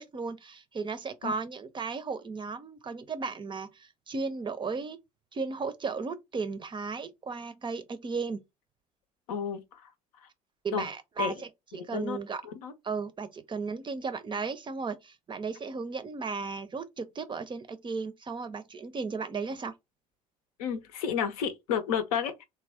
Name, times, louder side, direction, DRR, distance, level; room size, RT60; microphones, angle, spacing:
voice 1, 0.0-5.0 5.3-8.4 10.6-12.4 12.8-19.7, right 4 dB, 25° right, 0.6 m, -35 dB
voice 2, 9.3-9.9 10.7-10.9 11.2-11.3 11.7-12.7 20.6-22.4, left 7 dB, 70° left, 0.7 m, -32 dB
3.3 x 2.3 x 3.5 m
figure-of-eight pair, 60°, 20 cm